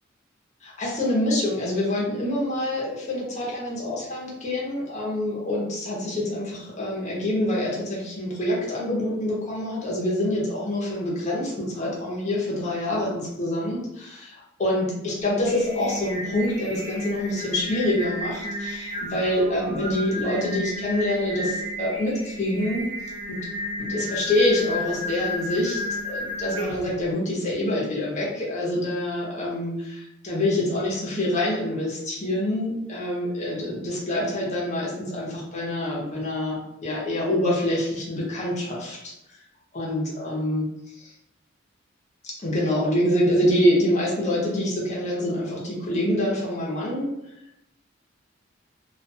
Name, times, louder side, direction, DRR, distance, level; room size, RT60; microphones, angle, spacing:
voice 1, 0.6-22.9 23.3-23.4 23.8-39.1 39.7-40.6 41.0-41.1 42.4-47.1, left 1 dB, 40° left, -5 dB, 0.8 m, -26 dB
Singing, 15.2-27.0, left 1 dB, 30° right, 0.7 m, -33 dB
2.4 x 2.3 x 2.7 m, 0.84 s
head